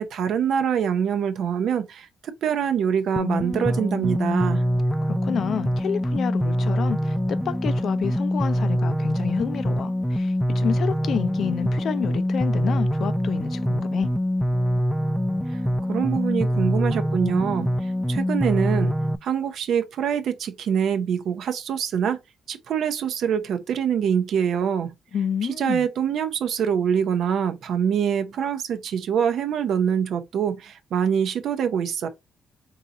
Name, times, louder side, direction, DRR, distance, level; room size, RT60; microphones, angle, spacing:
voice 1, 0.0-2.1 2.4-4.6 15.5-15.6 15.9-18.9 19.2-22.2 22.5-24.9 25.4-32.1, right 8 dB, 70° right, 0.7 m, -24 dB
sound 1, 3.2-19.2, equal, ahead, 0.4 m, -24 dB
voice 2, 5.0-14.1 25.1-25.9, left 8 dB, 65° left, 0.5 m, -29 dB
3.8 x 2.8 x 3.8 m
cardioid pair, 80°, 0 cm